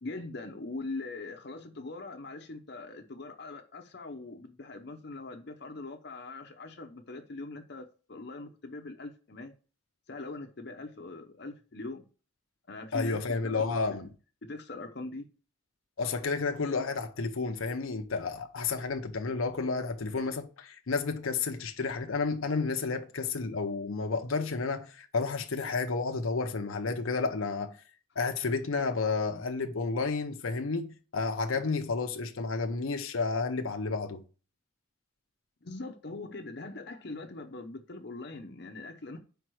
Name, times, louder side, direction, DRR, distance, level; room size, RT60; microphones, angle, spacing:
voice 1, 0.0-9.5 10.1-12.0 12.7-13.2 13.4-14.0 14.4-15.3 35.6-39.2, left 2 dB, 55° left, 0.7 m, -42 dB
voice 2, 12.9-14.1 16.0-27.7 28.2-34.2, left 4 dB, 85° left, 0.8 m, -31 dB
5.2 x 4.6 x 6.1 m
head